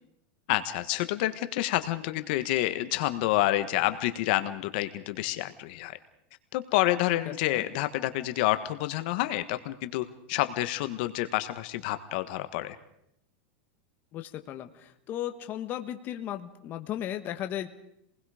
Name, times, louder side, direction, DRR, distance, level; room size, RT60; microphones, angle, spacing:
voice 1, 0.5-6.0 6.5-12.8, left 16 dB, 55° left, 11 dB, 1.4 m, -28 dB
voice 2, 7.3-7.6 14.1-17.7, left 11 dB, 35° left, 7 dB, 1.5 m, -36 dB
30.0 x 20.5 x 5.0 m, 0.77 s
supercardioid pair, 150°, 6 cm